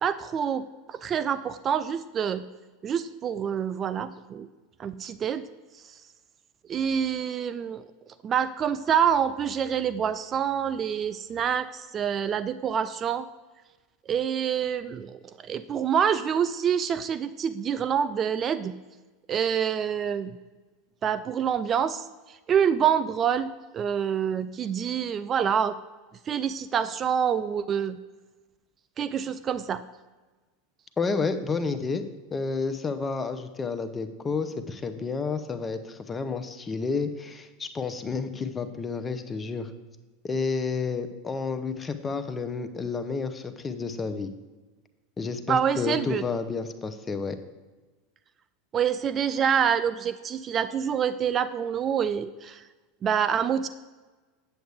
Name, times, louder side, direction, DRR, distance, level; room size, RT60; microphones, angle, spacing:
voice 1, 0.0-2.5 2.8-4.5 4.8-5.4 6.7-7.8 8.2-13.3 14.1-18.8 19.3-20.4 21.0-25.8 26.3-28.0 29.0-29.8 45.5-46.2 48.7-52.6 53.0-53.7, right 8 dB, 35° right, 13 dB, 0.3 m, -26 dB
voice 2, 31.0-32.0 32.3-39.7 40.2-44.3 45.2-47.4, left 4 dB, 20° left, 9 dB, 0.7 m, -30 dB
7.9 x 7.8 x 3.5 m, 1.3 s
hypercardioid pair, 90°, 0 cm